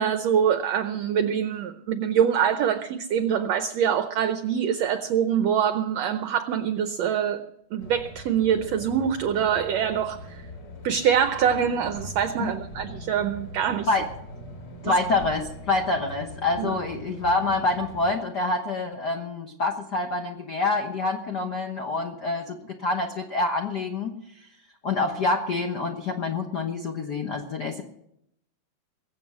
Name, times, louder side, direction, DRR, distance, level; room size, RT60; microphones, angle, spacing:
voice 1, 0.0-7.5 7.7-10.4 10.8-13.9 14.8-14.9 16.6-16.7, right 8 dB, 80° right, 10 dB, 1.5 m, -24 dB
sound 1, 7.8-18.1, equal, 30° left, 3.4 m, -41 dB
voice 2, 14.8-24.2 24.8-27.8, left 3 dB, 65° left, 3 dB, 1.0 m, -26 dB
22.5 x 8.1 x 6.1 m, 0.76 s
omnidirectional pair, 3.8 m